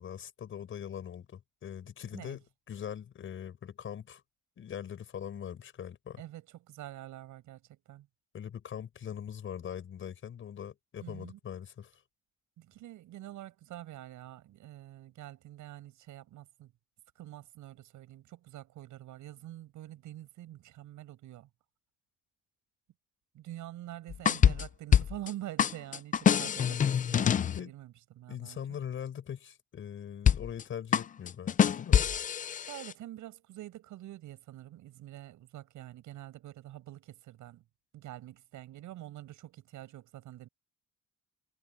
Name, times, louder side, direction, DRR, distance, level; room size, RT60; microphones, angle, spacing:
voice 1, 0.0-4.2 4.6-6.2 8.3-11.9 27.5-27.7 28.3-32.0, left 8 dB, 40° left, 7.4 m, -41 dB
voice 2, 6.2-8.1 11.0-11.4 12.6-16.7 17.1-21.5 23.3-28.8 32.7-37.6 37.9-40.5, right 14 dB, 80° right, 6.8 m, -46 dB
sound 1, 24.1-25.3 25.6-27.6 30.3-30.6 30.9-32.9, left 8 dB, 25° left, 0.5 m, -25 dB
cardioid pair, 180°, 30 cm